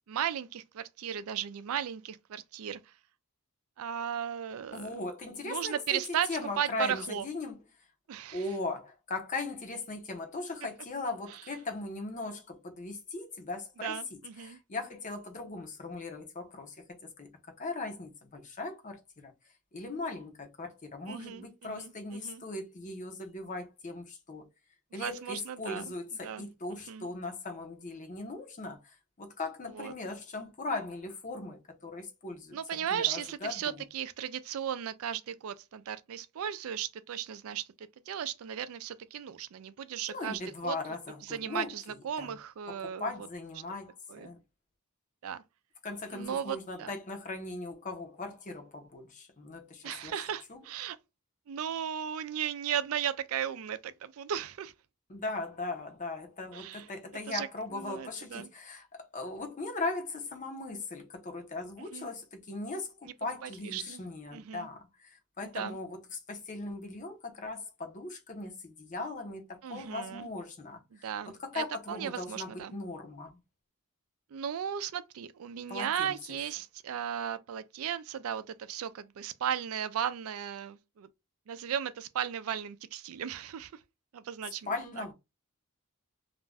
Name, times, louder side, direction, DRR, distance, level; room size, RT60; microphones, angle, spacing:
voice 1, 0.1-2.9 3.8-4.9 5.4-7.3 8.1-8.4 13.8-14.6 21.1-22.4 24.9-25.8 26.2-26.4 26.9-27.1 29.7-29.9 32.5-40.8 41.3-43.1 44.1-44.3 45.2-45.4 46.1-46.9 49.8-51.0 51.5-54.7 56.5-56.9 57.3-57.5 57.7-58.5 61.9-62.1 63.0-63.1 63.4-64.0 64.3-64.7 65.5-65.8 69.6-70.3 70.9-72.7 74.3-81.1 81.5-83.8 84.1-84.7 85.0-85.1, right 9 dB, 70° right, 0.4 m, -36 dB
voice 2, 4.7-7.6 8.3-19.3 19.7-24.4 24.9-33.8 40.1-41.7 42.2-42.3 42.7-44.4 45.8-50.1 50.5-50.6 55.1-73.4 75.7-76.4 84.7-85.1, left 3 dB, 35° left, 0.7 m, -39 dB
2.5 x 2.2 x 3.2 m
head